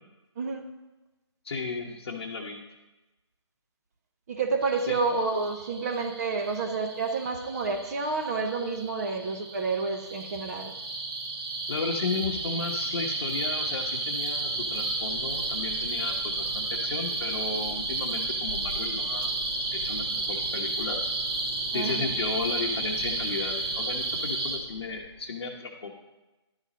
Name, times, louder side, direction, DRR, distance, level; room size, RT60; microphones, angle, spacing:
voice 1, 0.4-0.7 4.3-10.7 21.7-22.1, right 4 dB, 35° right, 5 dB, 0.8 m, -29 dB
voice 2, 1.4-2.6 4.9-5.0 11.7-19.3 19.7-21.1 21.7-25.9, left 4 dB, 60° left, -2 dB, 1.0 m, -34 dB
sound 1, 4.6-24.6, right 3 dB, 55° right, 1.4 m, -32 dB
sound 2, 14.4-25.3, left 3 dB, 35° left, 1.2 m, -46 dB
11.5 x 4.1 x 5.0 m, 1.1 s
hypercardioid pair, 160°, 15 cm